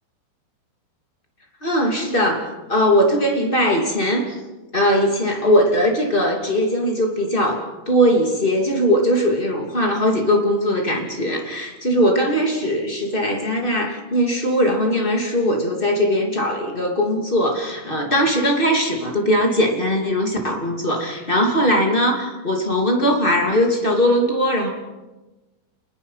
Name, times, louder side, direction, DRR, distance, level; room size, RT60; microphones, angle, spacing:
voice 1, 1.6-4.3 4.7-24.7, equal, 20° left, 1 dB, 1.5 m, -20 dB
29.5 x 21.0 x 5.8 m, 1.1 s
omnidirectional pair, 5.8 m